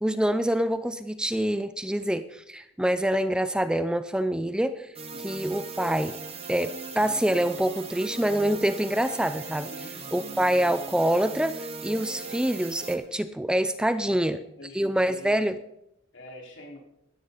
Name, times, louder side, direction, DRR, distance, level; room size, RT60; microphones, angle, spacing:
voice 1, 0.0-4.9 5.2-6.2 6.5-9.7 10.1-14.4 14.7-15.6, right 1 dB, 5° right, 12 dB, 0.5 m, -26 dB
sound 1, 4.9-12.9, right 4 dB, 30° right, 2.1 m, -39 dB
voice 2, 9.7-10.0 13.9-14.2 14.6-15.4 16.1-16.8, left 1 dB, 65° left, 0 dB, 4.5 m, -45 dB
18.0 x 13.0 x 4.0 m, 0.83 s
head